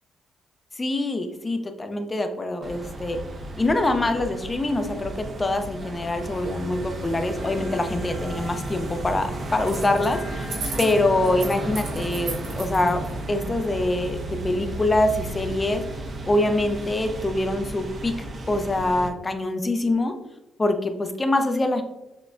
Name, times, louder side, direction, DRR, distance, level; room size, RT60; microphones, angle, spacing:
voice 1, 0.8-3.2 3.6-10.5 10.8-13.0 13.3-15.8 16.2-18.1 18.5-20.1 20.6-21.8, left 2 dB, 25° left, 7 dB, 0.5 m, -24 dB
sound 1, 2.6-19.1, right 1 dB, 40° right, 0.6 m, -34 dB
sound 2, 9.6-10.1 10.4-13.1, right 4 dB, 80° right, 1.1 m, -35 dB
6.1 x 2.2 x 2.5 m, 1.0 s
cardioid pair, 90°, 0 cm